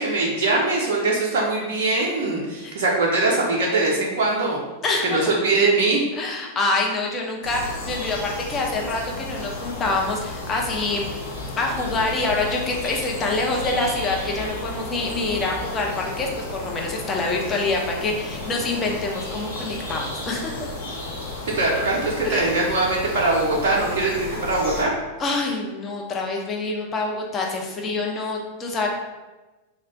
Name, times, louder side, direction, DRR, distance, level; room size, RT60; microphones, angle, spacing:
voice 1, 0.0-4.6 5.0-6.0 21.5-24.9, right 2 dB, 55° right, -3 dB, 0.5 m, -22 dB
voice 2, 4.8-5.3 6.1-11.2 11.6-20.7 22.2-22.5 25.2-28.9, left 3 dB, 25° left, 0 dB, 0.5 m, -26 dB
sound 1, 7.4-24.8, left 2 dB, 70° left, 0.7 m, -33 dB
2.3 x 2.1 x 3.9 m, 1.1 s
figure-of-eight pair, 90°, 0 cm